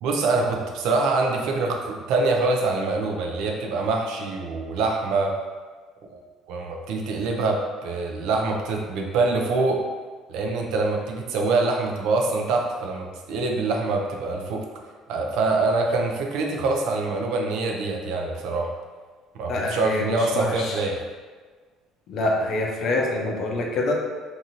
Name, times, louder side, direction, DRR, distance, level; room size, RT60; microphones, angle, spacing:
voice 1, 0.0-5.4 6.1-6.2 6.5-9.8 10.3-14.6 15.1-18.7 19.3-21.0, right 3 dB, 75° right, 1 dB, 0.4 m, -25 dB
voice 2, 19.5-20.8 22.1-23.9, left 2 dB, 50° left, 0 dB, 0.5 m, -26 dB
2.6 x 2.6 x 2.8 m, 1.4 s
cardioid pair, 145°, 0 cm